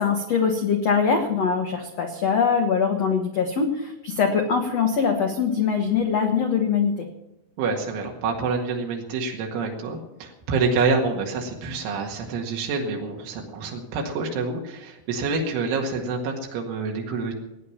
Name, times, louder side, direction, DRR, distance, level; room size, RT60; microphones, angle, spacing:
voice 1, 0.0-7.1, left 6 dB, 90° left, 4 dB, 1.4 m, -22 dB
voice 2, 7.6-17.3, right 4 dB, 85° right, 0 dB, 4.4 m, -27 dB
18.0 x 9.7 x 7.2 m, 0.93 s
omnidirectional pair, 5.4 m